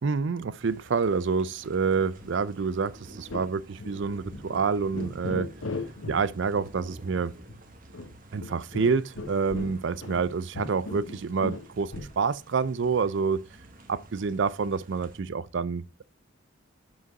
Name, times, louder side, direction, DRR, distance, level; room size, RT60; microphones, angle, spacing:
voice 1, 0.0-5.5 6.1-7.3 8.3-13.4 13.9-16.0, right 5 dB, 60° right, 0.4 m, -28 dB
sound 1, 0.6-15.2, right 1 dB, 40° right, 1.3 m, -51 dB
sound 2, 2.2-2.5 2.8-2.9 3.3-3.5 3.8-4.6 4.9-6.2 6.5-6.7 7.1-7.2 7.5-7.6 7.9-10.3 10.5-12.2, left 2 dB, 75° left, 1.2 m, -38 dB
7.7 x 5.4 x 4.0 m
head